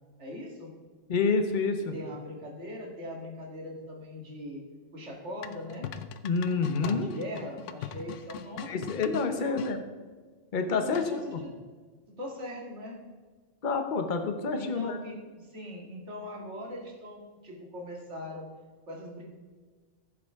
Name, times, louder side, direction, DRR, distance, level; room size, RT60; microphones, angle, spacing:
voice 1, 0.2-0.7 1.9-4.6 4.9-5.9 6.8-8.8 9.4-9.6 10.6-11.5 12.1-13.0 14.5-18.5 18.9-19.2, left 1 dB, 65° right, -1 dB, 2.2 m, -40 dB
voice 2, 1.1-1.9 6.2-7.1 8.7-9.8 10.5-11.4 13.6-14.9, left 4 dB, 45° left, 6 dB, 0.9 m, -28 dB
sound 1, 5.4-9.7 10.9-11.4, left 9 dB, 75° left, 0.9 m, -41 dB
14.0 x 7.6 x 3.6 m, 1.4 s
omnidirectional pair, 1.3 m